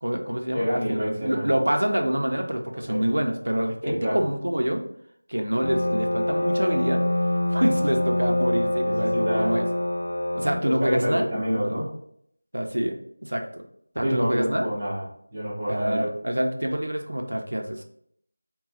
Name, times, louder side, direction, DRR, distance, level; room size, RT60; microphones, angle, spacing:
voice 1, 0.0-4.8 5.3-7.0 7.5-9.7 10.3-11.2 11.6-11.7 12.5-13.6 13.9-14.7 15.7-17.8, equal, 90° right, 3 dB, 0.8 m, -26 dB
voice 2, 0.5-1.5 2.9-3.0 3.8-4.2 8.8-9.5 10.6-11.9 14.0-15.0 15.3-16.1, equal, 15° right, -10 dB, 0.9 m, -27 dB
sound 1, 5.6-10.6, left 1 dB, 80° left, 0.3 m, -25 dB
4.6 x 2.3 x 3.9 m, 0.69 s
figure-of-eight pair, 180°, 0 cm